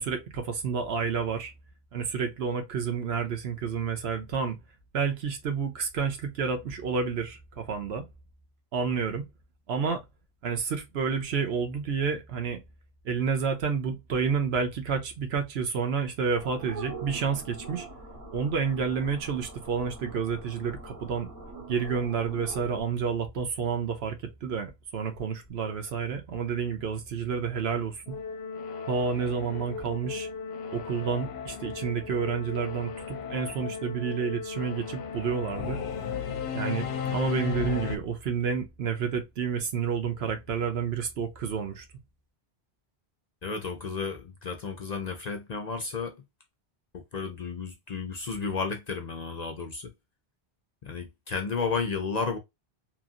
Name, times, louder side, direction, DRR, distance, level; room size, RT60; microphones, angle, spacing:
voice 1, 0.0-1.5 1.9-4.6 4.9-8.1 8.7-9.2 9.7-10.0 10.4-12.6 13.0-17.9 18.3-21.3 21.7-28.1 28.9-30.3 30.7-35.8 36.5-41.8, right 6 dB, 70° right, 1.0 m, -30 dB
sound 1, 16.4-22.8, right 2 dB, 35° right, 1.2 m, -43 dB
Singing / Musical instrument, 28.1-38.0, left 7 dB, 75° left, 0.8 m, -35 dB
voice 2, 43.4-46.2 46.9-49.9 50.8-52.4, left 5 dB, 50° left, 0.5 m, -32 dB
3.0 x 2.5 x 2.4 m
omnidirectional pair, 1.1 m